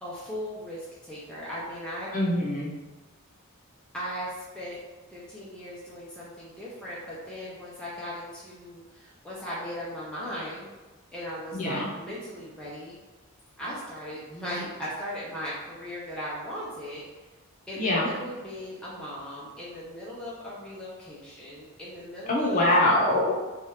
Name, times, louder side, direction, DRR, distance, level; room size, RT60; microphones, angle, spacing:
voice 1, 0.0-2.1 3.9-4.8 5.1-10.7 11.1-13.0 13.6-17.0 17.7-22.9, equal, 5° left, -8 dB, 0.4 m, -38 dB
voice 2, 2.1-2.7 11.5-11.9 17.8-18.1 22.3-23.3, left 1 dB, 35° left, -4 dB, 0.7 m, -23 dB
2.8 x 2.3 x 3.2 m, 1.2 s
head